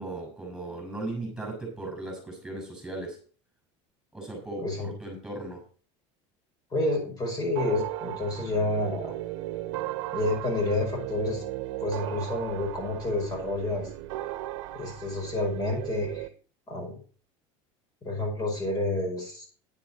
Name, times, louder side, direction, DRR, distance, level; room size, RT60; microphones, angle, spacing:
voice 1, 0.0-3.2 4.1-5.6, right 2 dB, 5° right, 1 dB, 6.1 m, -37 dB
voice 2, 6.7-9.1 10.1-11.4 11.8-13.9 14.7-16.3 16.7-17.0 18.0-19.5, left 2 dB, 25° left, 1 dB, 5.2 m, -29 dB
sound 1, 7.6-16.3, right 16 dB, 80° right, 1.2 m, -36 dB
11.0 x 10.0 x 4.1 m, 0.39 s
cardioid pair, 150°, 15 cm